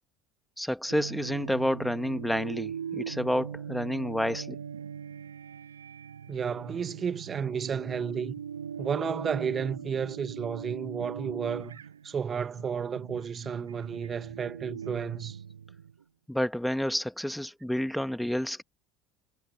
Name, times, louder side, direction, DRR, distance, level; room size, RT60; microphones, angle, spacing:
voice 1, 0.6-4.6 16.3-18.6, equal, 5° left, 2.1 m, -29 dB
sound 1, 0.9-16.0, right 8 dB, 80° right, 0.7 m, -41 dB
voice 2, 6.3-8.3 8.8-11.8 12.0-15.4, right 7 dB, 30° right, 1.4 m, -32 dB
figure-of-eight pair, 65°, 0 cm